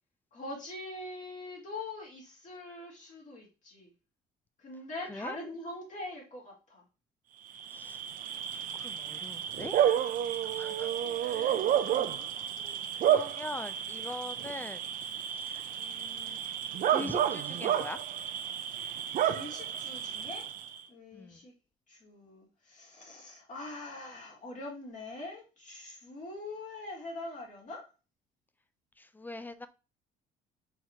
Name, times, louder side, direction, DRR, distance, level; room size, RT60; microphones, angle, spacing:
voice 1, 0.3-3.9 4.6-6.8 10.9-12.2 19.1-20.5 20.9-21.5 21.9-27.8, left 2 dB, 45° left, 2.4 m, -43 dB
Bark / Cricket, 7.5-20.8, right 10 dB, 55° right, 0.5 m, -31 dB
voice 2, 8.7-9.8 10.5-10.9 11.2-11.6 12.0-12.3 12.6-14.8 15.3-16.4 16.9-18.0 21.1-21.4 29.0-29.7, left 2 dB, 10° left, 0.3 m, -43 dB
4.6 x 3.5 x 2.9 m
cardioid pair, 110°, 17 cm